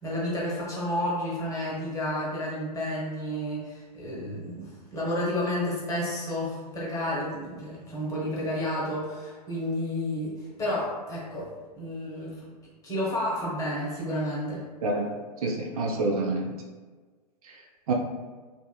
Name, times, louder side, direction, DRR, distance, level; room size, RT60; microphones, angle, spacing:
voice 1, 0.0-10.3 10.6-12.3 12.8-14.6, left 1 dB, 15° left, -6 dB, 0.9 m, -31 dB
voice 2, 14.8-16.5 17.4-17.6 17.9-18.0, right 2 dB, 60° right, 0 dB, 0.5 m, -28 dB
2.5 x 2.5 x 2.3 m, 1.4 s
figure-of-eight pair, 105°, 21 cm